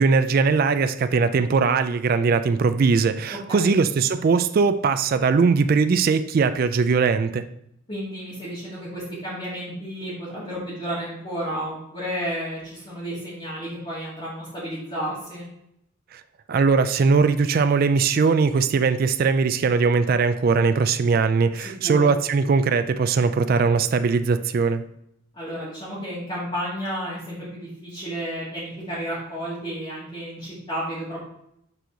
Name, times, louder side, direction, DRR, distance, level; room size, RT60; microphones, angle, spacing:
voice 1, 0.0-7.4 16.5-24.8, right 5 dB, 45° right, 10 dB, 0.3 m, -20 dB
voice 2, 3.5-3.8 7.9-15.5 21.6-22.1 25.3-31.2, equal, 25° left, -10 dB, 2.2 m, -32 dB
6.9 x 4.5 x 3.9 m, 0.75 s
head